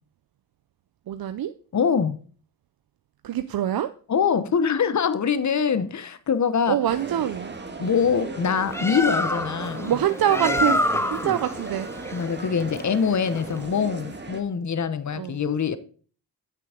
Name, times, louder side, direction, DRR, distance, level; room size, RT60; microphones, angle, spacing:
voice 1, 1.1-1.5 3.2-3.9 6.7-7.5 8.8-8.9 9.8-11.9 15.1-15.4, right 10 dB, 60° right, 0.6 m, -25 dB
voice 2, 1.7-2.2 4.1-6.8 7.8-9.9 12.1-15.8, left 6 dB, 45° left, 1.0 m, -24 dB
sound 1, 6.9-14.4, right 3 dB, 25° right, 1.7 m, -35 dB
Bird, 8.5-13.7, left 1 dB, 5° left, 0.7 m, -28 dB
8.9 x 6.3 x 5.0 m
cardioid pair, 60°, 40 cm